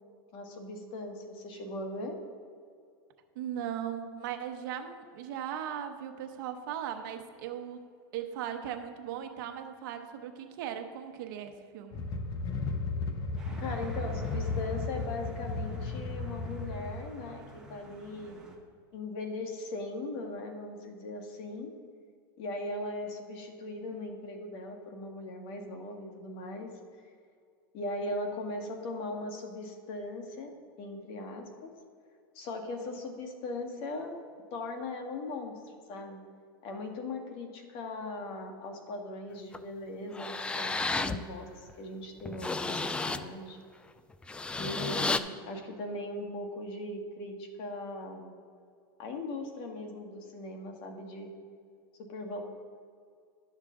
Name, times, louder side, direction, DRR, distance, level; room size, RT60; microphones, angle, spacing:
voice 1, 0.3-2.1 13.6-18.4 18.9-21.7 22.4-26.7 27.7-30.5 30.8-31.7 32.3-34.1 34.5-36.2 36.6-41.5 41.8-43.6 44.6-48.3 49.0-51.3 52.0-52.4, left 2 dB, 50° left, 3 dB, 1.6 m, -39 dB
voice 2, 3.3-7.8 8.1-12.0, right 9 dB, 65° right, 6 dB, 1.0 m, -38 dB
sound 1, 11.9-16.9, left 3 dB, 35° left, 0.8 m, -34 dB
sound 2, 13.4-18.6, right 1 dB, 5° right, 1.5 m, -51 dB
sound 3, 39.5-39.6 40.1-41.2 41.7-41.8 42.2-43.3 44.1-45.2, left 3 dB, 10° left, 0.3 m, -32 dB
12.0 x 6.6 x 3.7 m, 2.2 s
supercardioid pair, 130°, 12 cm